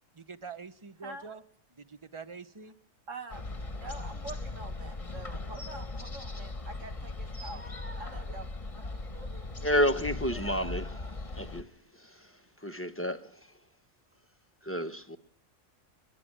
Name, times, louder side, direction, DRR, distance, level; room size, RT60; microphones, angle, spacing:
voice 1, 0.1-1.4 1.8-2.8, right 5 dB, 25° right, 1.2 m, -45 dB
voice 2, 1.0-1.4 3.1-3.4 3.7-7.6 8.0-8.5 9.1-9.5, right 3 dB, 75° right, 2.3 m, -45 dB
sound 1, 3.3-11.6, left 2 dB, 25° left, 1.3 m, -39 dB
voice 3, 9.6-11.0 11.4-11.6 12.6-13.3 14.6-15.2, equal, 10° left, 1.1 m, -29 dB
22.5 x 21.5 x 8.8 m
omnidirectional pair, 1.3 m